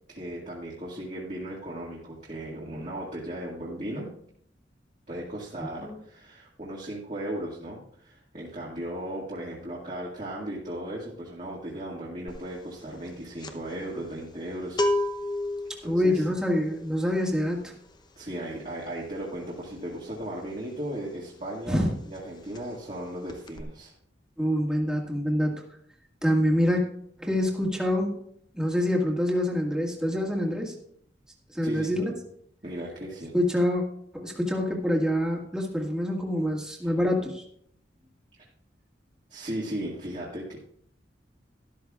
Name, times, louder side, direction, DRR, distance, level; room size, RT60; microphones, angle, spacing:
voice 1, 0.1-4.1 5.1-14.8 15.8-16.2 18.2-23.9 31.6-32.2 32.6-33.4 39.3-40.6, right 1 dB, 40° right, -5 dB, 2.0 m, -36 dB
voice 2, 5.6-6.0 15.8-17.7 21.7-21.9 24.4-25.6 26.2-26.8 27.2-28.2 28.5-30.7 31.5-32.1 33.3-33.8 34.1-37.4, equal, 5° right, -1 dB, 1.8 m, -26 dB
sound 1, 12.3-12.5 12.8-21.4 21.7-21.9 22.1-23.0 23.3-23.6, left 1 dB, 25° left, 0.8 m, -33 dB
12.5 x 12.5 x 2.4 m, 0.68 s
head